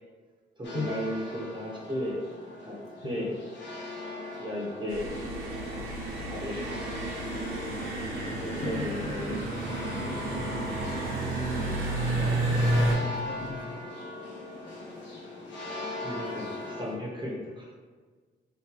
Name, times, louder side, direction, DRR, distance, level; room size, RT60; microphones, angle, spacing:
sound 1, 0.6-16.9, left 2 dB, 65° left, 0.9 m, -41 dB
voice 1, 0.6-2.2 2.6-2.8 3.0-3.3 4.4-5.0 6.3-6.7 8.3-9.4 16.0-17.7, equal, 25° right, -3 dB, 1.1 m, -35 dB
sound 2, 4.9-12.9, right 1 dB, 85° right, 1.0 m, -30 dB
voice 2, 8.6-9.1 12.1-13.9, left 5 dB, 40° left, 8 dB, 0.4 m, -39 dB
3.3 x 2.9 x 2.9 m, 1.5 s
supercardioid pair, 65°, 20 cm